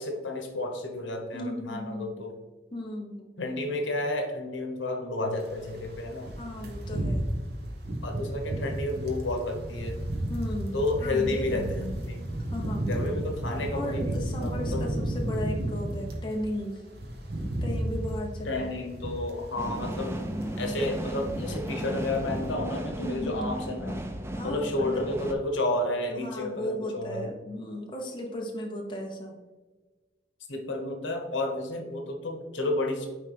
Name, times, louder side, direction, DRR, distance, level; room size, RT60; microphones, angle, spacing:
voice 1, 0.0-2.3 3.4-6.3 8.0-10.0 10.7-12.3 12.9-14.2 14.4-14.9 18.5-20.2 20.6-24.0 24.4-27.3 30.5-33.1, left 2 dB, 80° left, 3 dB, 1.0 m, -31 dB
voice 2, 1.3-2.2 2.7-3.3 6.4-7.3 10.3-11.7 12.5-12.9 13.7-16.8 17.6-18.6 22.9-23.5 24.4-25.0 26.2-29.4, left 1 dB, 25° left, 0 dB, 0.8 m, -36 dB
sound 1, 5.4-16.3 16.7-20.1 20.4-20.6 20.9-21.8 22.0-22.2, right 1 dB, 55° right, 1.0 m, -33 dB
sound 2, 19.6-25.3, right 1 dB, 15° right, 0.4 m, -35 dB
9.2 x 3.3 x 3.3 m, 1.2 s
head